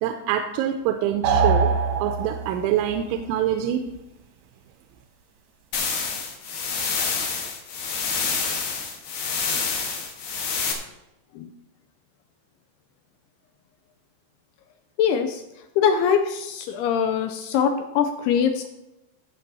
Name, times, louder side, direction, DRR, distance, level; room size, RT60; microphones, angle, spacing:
voice 1, 0.0-1.7 2.0-3.8, right 10 dB, 90° right, 6 dB, 3.1 m, -25 dB
sound 1, 1.2-2.7, right 5 dB, 65° right, 1.8 m, -22 dB
sound 2, 5.7-10.7, left 5 dB, 60° left, 3.1 m, -27 dB
voice 2, 15.0-15.4 15.8-18.7, left 7 dB, 85° left, 7 dB, 2.3 m, -22 dB
14.0 x 7.7 x 4.1 m, 0.94 s
omnidirectional pair, 5.4 m